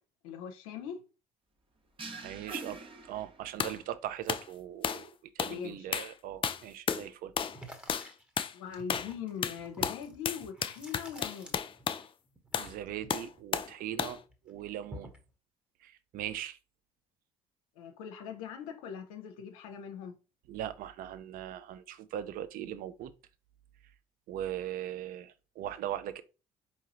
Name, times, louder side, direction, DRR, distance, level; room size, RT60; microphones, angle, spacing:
voice 1, 0.2-1.0 5.4-6.0 8.5-11.6 17.8-20.1, left 7 dB, 75° left, 0.6 m, -41 dB
sound 1, 2.0-3.8, right 3 dB, 30° right, 0.8 m, -44 dB
voice 2, 2.2-7.3 12.6-15.1 15.8-16.6 20.5-23.1 24.3-26.2, right 11 dB, 55° right, 0.5 m, -40 dB
sound 2, 3.6-3.8 4.3-4.5 4.8-5.1 5.4-5.6 5.9-6.1 6.4-7.1 7.4-7.6 7.9-8.1 8.4-8.5 8.9-9.1 9.4-12.1 12.5-12.7 13.1-13.7 14.0-14.2, left 7 dB, 30° left, 0.4 m, -33 dB
sound 3, 7.5-12.1 12.3-14.0 14.3-15.3, right 1 dB, 5° right, 1.1 m, -50 dB
4.7 x 2.8 x 2.8 m
figure-of-eight pair, 50°, 18 cm